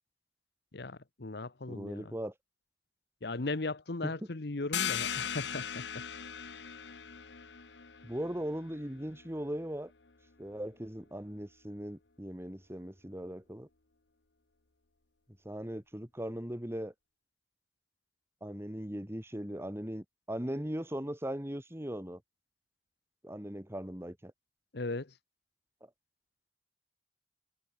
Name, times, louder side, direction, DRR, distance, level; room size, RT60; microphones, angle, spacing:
voice 1, 0.7-2.1 3.2-6.0 24.7-25.1, left 2 dB, 65° left, 1.1 m, -37 dB
voice 2, 1.7-2.3 4.0-4.2 8.0-9.9 10.4-13.7 15.4-16.9 18.4-22.2 23.2-24.3, equal, 15° right, 2.1 m, -39 dB
sound 1, 4.7-10.1, left 8 dB, 85° left, 1.5 m, -39 dB
head